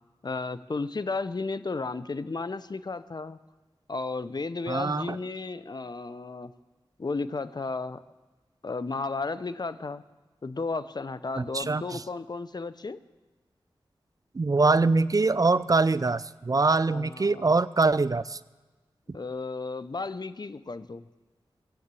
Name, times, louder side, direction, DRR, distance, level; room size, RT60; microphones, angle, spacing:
voice 1, 0.2-3.4 3.9-6.5 7.0-8.0 8.6-10.0 10.4-13.0 16.9-17.5 19.1-21.0, left 3 dB, 45° left, 14 dB, 0.7 m, -33 dB
voice 2, 4.7-5.2 11.4-12.0 14.3-18.4, right 3 dB, 40° right, 17 dB, 0.4 m, -24 dB
18.0 x 8.0 x 8.3 m, 1.2 s
cardioid pair, 45°, 10 cm